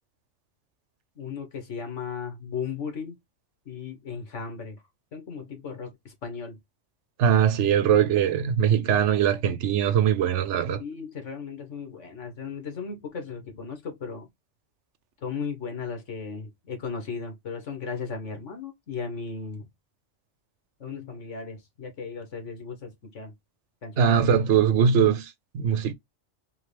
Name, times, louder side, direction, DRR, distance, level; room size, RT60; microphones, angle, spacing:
voice 1, 1.2-3.2 3.7-4.8 5.1-6.6 10.8-14.3 15.2-19.7 20.8-23.3 23.8-24.5, left 5 dB, 75° left, 1.7 m, -36 dB
voice 2, 7.2-10.8 24.0-25.9, right 8 dB, 75° right, 0.9 m, -21 dB
3.8 x 3.1 x 3.3 m
omnidirectional pair, 1.3 m